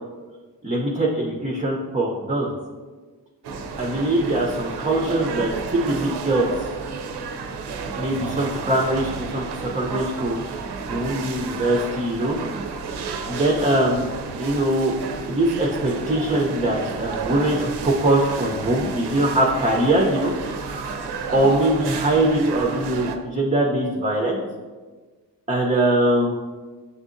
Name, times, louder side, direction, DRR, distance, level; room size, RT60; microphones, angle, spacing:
voice 1, 0.6-2.5 3.8-6.5 8.0-9.5 9.7-10.4 10.9-12.4 13.3-14.1 14.4-14.9 15.3-21.0 21.3-24.4 25.5-26.3, right 1 dB, 15° right, -1 dB, 0.5 m, -22 dB
sound 1, 3.4-23.2, right 4 dB, 65° right, 0.5 m, -32 dB
6.6 x 2.6 x 2.5 m, 1.4 s
cardioid pair, 50°, 43 cm